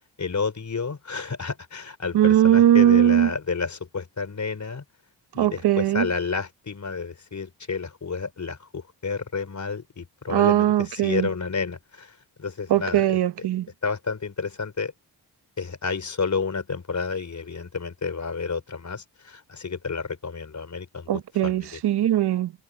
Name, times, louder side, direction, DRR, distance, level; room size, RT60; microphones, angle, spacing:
voice 1, 0.2-4.8 5.3-13.2 13.8-14.9 15.6-21.8, left 5 dB, 45° left, 4.2 m, -30 dB
voice 2, 2.1-3.3 5.4-6.1 10.3-11.3 12.7-13.7 21.1-22.5, right 11 dB, 75° right, 0.9 m, -20 dB
cardioid pair, 60°, 40 cm